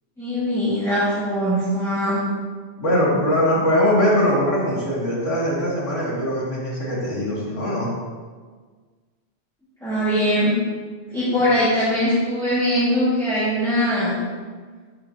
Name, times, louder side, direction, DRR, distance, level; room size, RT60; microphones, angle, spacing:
voice 1, 0.2-2.2 9.8-10.5 11.1-14.2, equal, 5° left, -12 dB, 1.7 m, -21 dB
voice 2, 2.8-7.9, equal, 90° left, -7 dB, 2.5 m, -21 dB
7.5 x 6.3 x 2.8 m, 1.5 s
omnidirectional pair, 1.2 m